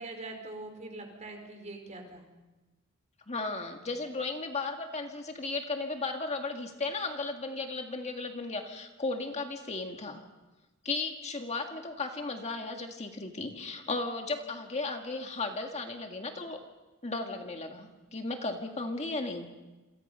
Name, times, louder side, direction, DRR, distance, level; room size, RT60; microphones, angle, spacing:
voice 1, 0.0-2.3, right 2 dB, 35° right, 3 dB, 4.8 m, -43 dB
voice 2, 3.3-10.2 10.8-16.6 17.0-19.5, left 3 dB, 30° left, 4 dB, 1.8 m, -35 dB
28.0 x 27.0 x 5.6 m, 1.1 s
head